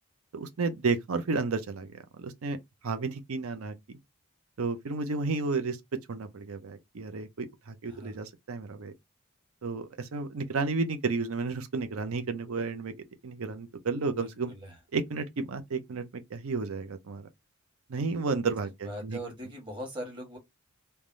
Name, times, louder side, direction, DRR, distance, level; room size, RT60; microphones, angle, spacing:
voice 1, 0.3-2.6 2.8-4.0 4.6-5.8 6.1-8.9 9.6-12.9 13.2-14.5 14.9-17.3 17.9-19.2, right 4 dB, 80° right, 0.6 m, -32 dB
voice 2, 7.9-8.2 14.0-14.8 18.8-20.4, equal, 25° right, 1.3 m, -41 dB
3.3 x 2.2 x 2.6 m
head